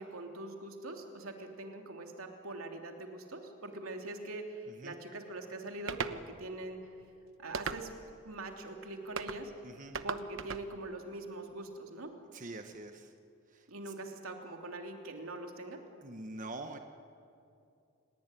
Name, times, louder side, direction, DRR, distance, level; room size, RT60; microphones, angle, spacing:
voice 1, 0.0-6.8 7.4-7.9 8.2-9.5 10.0-12.1 13.7-15.8, right 2 dB, 85° right, 3 dB, 3.1 m, -43 dB
sound 1, 5.9-6.2 7.5-8.1 9.2-9.4 9.9-10.7, right 5 dB, 65° right, 1.0 m, -37 dB
voice 2, 9.6-10.0 12.3-13.1 13.5-13.9 16.0-16.8, right 2 dB, 40° right, 6 dB, 1.2 m, -45 dB
29.5 x 18.0 x 9.9 m, 2.5 s
head